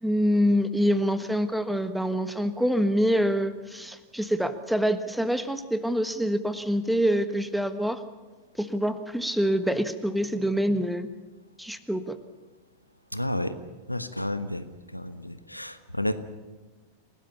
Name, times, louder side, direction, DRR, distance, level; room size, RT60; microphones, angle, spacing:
voice 1, 0.0-8.0 8.6-11.1 11.6-12.2, equal, ahead, 11 dB, 1.4 m, -26 dB
voice 2, 13.1-13.6 13.9-14.6 14.9-16.2, left 1 dB, 90° left, 11 dB, 1.2 m, -31 dB
28.5 x 18.0 x 7.1 m, 1.2 s
figure-of-eight pair, 90°, 0 cm